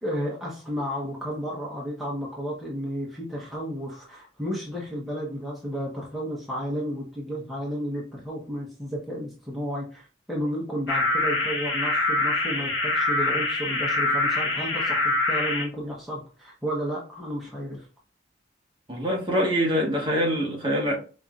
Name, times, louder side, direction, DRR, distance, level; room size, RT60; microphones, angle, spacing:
voice 1, 0.0-17.9, equal, ahead, 1.0 m, -32 dB
Clean phone tones, 10.9-15.6, left 2 dB, 60° left, 1.7 m, -25 dB
voice 2, 18.9-21.0, equal, 25° right, 1.3 m, -24 dB
5.5 x 3.3 x 2.5 m
head